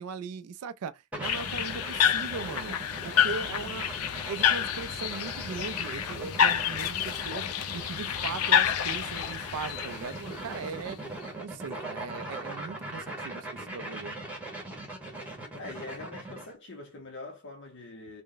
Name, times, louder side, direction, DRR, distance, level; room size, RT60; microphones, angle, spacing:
voice 1, 0.0-2.8 3.0-3.9 4.2-7.5 7.7-11.0 11.4-14.2, right 5 dB, 80° right, 0.4 m, -39 dB
sound 1, 1.1-16.5, right 1 dB, 5° right, 1.0 m, -41 dB
sound 2, 1.2-10.9, left 9 dB, 85° left, 0.5 m, -29 dB
voice 2, 15.5-18.2, left 2 dB, 55° left, 0.8 m, -43 dB
3.3 x 2.1 x 3.8 m
head